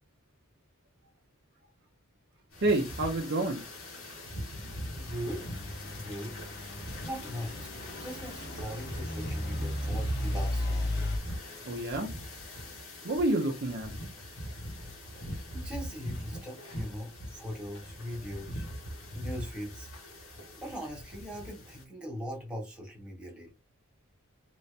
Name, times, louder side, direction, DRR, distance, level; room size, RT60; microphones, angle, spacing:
sound 1, 2.5-21.8, equal, 70° left, 1.3 m, -42 dB
voice 1, 2.6-3.6 11.6-12.1 13.0-13.9, right 2 dB, 50° right, 0.6 m, -28 dB
voice 2, 5.0-5.6 5.9-6.3 7.0-10.9 15.5-18.7 19.1-19.9 20.6-23.5, equal, 5° right, 1.4 m, -40 dB
Truck / Idling, 5.1-11.2, left 1 dB, 50° left, 0.9 m, -35 dB
3.0 x 2.8 x 3.2 m
head